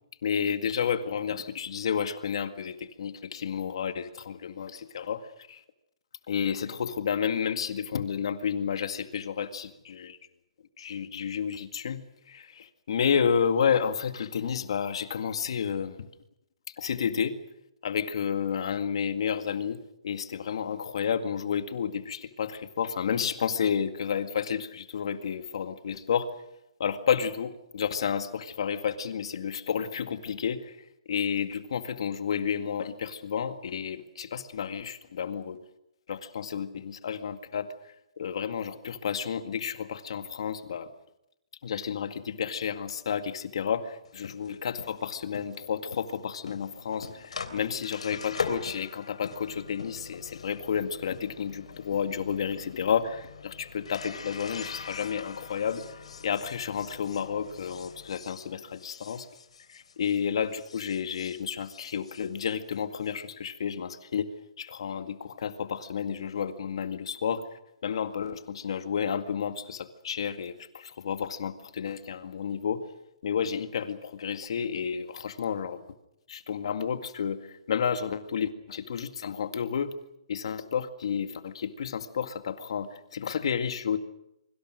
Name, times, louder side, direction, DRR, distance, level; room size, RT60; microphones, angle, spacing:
voice 1, 0.2-5.6 6.3-10.2 10.8-12.0 12.3-16.1 16.8-17.4 17.8-26.3 26.8-30.8 31.1-35.6 36.1-37.7 38.2-40.9 41.6-55.8 56.2-59.3 59.7-67.5 67.8-72.9 73.2-75.8 76.3-79.9 80.3-84.0, left 7 dB, 55° left, 9 dB, 2.0 m, -31 dB
sound 1, 44.0-60.2 60.5-63.1, left 5 dB, 80° left, 3.4 m, -42 dB
25.0 x 24.0 x 6.4 m, 0.84 s
hypercardioid pair, 165°, 3 cm